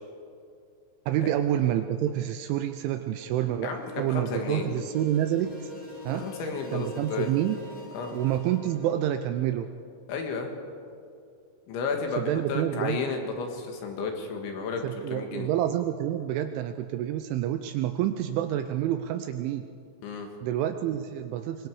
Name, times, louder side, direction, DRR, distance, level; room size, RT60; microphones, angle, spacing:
voice 1, 1.1-5.7 6.1-6.3 6.7-7.6 8.1-9.7 12.2-13.0 14.8-19.6 20.4-21.7, right 12 dB, 80° right, 8 dB, 2.8 m, -28 dB
sound 1, 2.9-9.0, left 2 dB, 10° left, 3.4 m, -44 dB
voice 2, 3.6-4.7 6.1-7.3 7.9-8.2 10.1-10.5 11.7-15.5 20.0-20.3, left 5 dB, 70° left, 3 dB, 3.9 m, -33 dB
25.0 x 22.5 x 4.8 m, 2.4 s
omnidirectional pair, 6.0 m